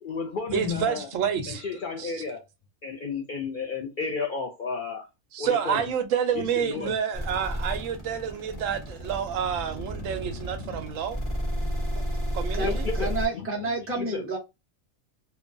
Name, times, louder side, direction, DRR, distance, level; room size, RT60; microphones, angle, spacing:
voice 1, 0.0-1.1 1.5-2.4 2.8-5.1 5.4-5.9 6.3-7.0 10.6-10.9 11.6-12.1 12.6-13.5 13.9-14.3, left 5 dB, 80° left, 0.4 m, -33 dB
voice 2, 0.5-1.6 2.0-2.1 5.3-11.2 12.3-12.8, right 8 dB, 75° right, 0.9 m, -28 dB
sound 1, 7.1-13.3, equal, 25° left, 1.0 m, -31 dB
sound 2, 7.2-12.4, right 1 dB, 50° left, 0.9 m, -43 dB
voice 3, 12.5-14.4, right 2 dB, 15° right, 0.6 m, -30 dB
2.8 x 2.2 x 2.5 m
omnidirectional pair, 1.4 m